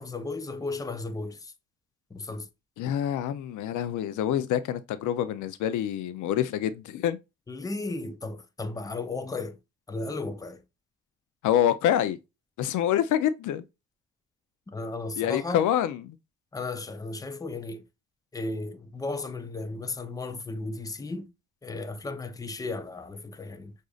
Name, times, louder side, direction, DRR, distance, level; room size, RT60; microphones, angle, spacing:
voice 1, 0.0-1.5 2.1-2.5 7.5-9.6 9.9-10.6 14.7-15.6 16.5-17.8 18.3-21.3 21.6-23.7, left 3 dB, 10° left, 0.6 m, -35 dB
voice 2, 2.8-7.2 11.4-12.2 12.6-13.6 15.2-16.2, left 10 dB, 80° left, 0.5 m, -26 dB
6.2 x 2.6 x 2.4 m
cardioid pair, 90°, 30 cm